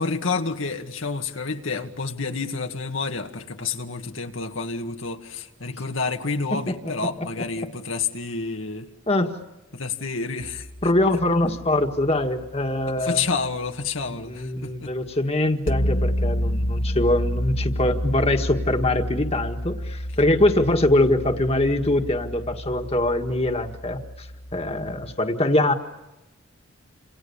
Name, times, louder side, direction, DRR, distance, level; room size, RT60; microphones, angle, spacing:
voice 1, 0.0-8.9 9.7-10.7 12.9-14.9, left 4 dB, 80° left, 4 dB, 2.0 m, -29 dB
sound 1, 10.4-13.6 15.7-25.1, equal, 65° left, 1.8 m, -30 dB
voice 2, 10.8-13.2 14.2-24.3 24.5-25.7, left 1 dB, 30° left, 5 dB, 1.8 m, -23 dB
29.0 x 28.0 x 7.2 m, 0.99 s
head